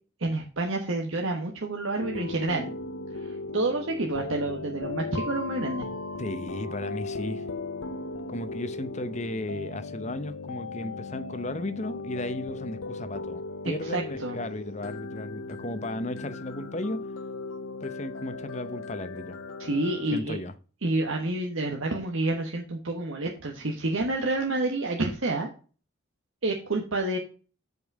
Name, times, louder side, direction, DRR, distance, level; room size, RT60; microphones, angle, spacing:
voice 1, 0.2-2.7 3.5-5.9 13.8-14.4 19.6-20.4 20.8-25.5 26.4-27.2, right 2 dB, 80° right, 1.3 m, -29 dB
sound 1, 2.0-20.2, left 3 dB, 85° left, 0.7 m, -37 dB
voice 2, 6.2-7.5 8.3-17.0 17.8-19.4 20.1-20.5, left 1 dB, 35° left, 0.8 m, -35 dB
8.4 x 5.4 x 4.7 m
head